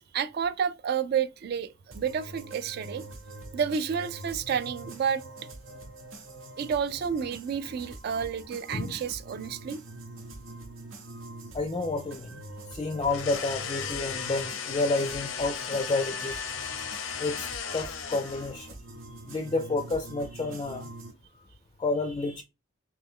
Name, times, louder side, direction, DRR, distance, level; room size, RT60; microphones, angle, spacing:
voice 1, 0.0-3.0 3.5-5.2 6.6-9.8, right 7 dB, 50° right, 0.3 m, -30 dB
sound 1, 1.9-21.1, right 2 dB, 90° right, 1.0 m, -44 dB
voice 2, 11.5-12.4 12.7-16.4 17.2-18.7 19.3-20.9 21.8-22.4, left 3 dB, 25° left, 0.4 m, -30 dB
sound 2, 13.0-18.6, left 7 dB, 90° left, 0.6 m, -36 dB
3.2 x 2.9 x 3.6 m
head